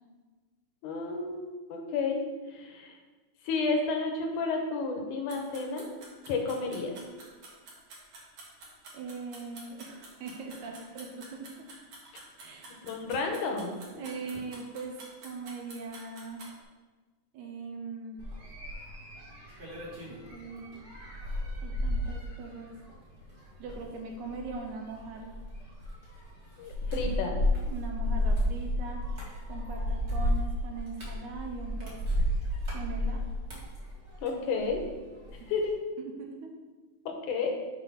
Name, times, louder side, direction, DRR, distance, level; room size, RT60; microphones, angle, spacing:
voice 1, 0.8-2.2 2.5-3.0 3.4-5.9 6.3-7.0 12.8-14.0 26.6-27.4 34.2-34.8 35.3-35.7 37.1-37.6, left 4 dB, 75° left, 3 dB, 2.2 m, -31 dB
sound 1, 5.3-16.5, right 2 dB, 55° right, 2.7 m, -48 dB
voice 2, 8.9-11.5 12.4-12.8 13.9-16.4 17.3-18.2 20.1-20.9 21.6-22.7 23.6-25.4 27.7-29.0 29.5-32.0 32.7-33.2 36.2-36.5, right 4 dB, 75° right, 2 dB, 2.0 m, -41 dB
sound 2, 18.2-34.9 35.2-35.7, left 1 dB, 30° right, 1.4 m, -33 dB
7.2 x 4.3 x 5.5 m, 1.3 s
omnidirectional pair, 3.8 m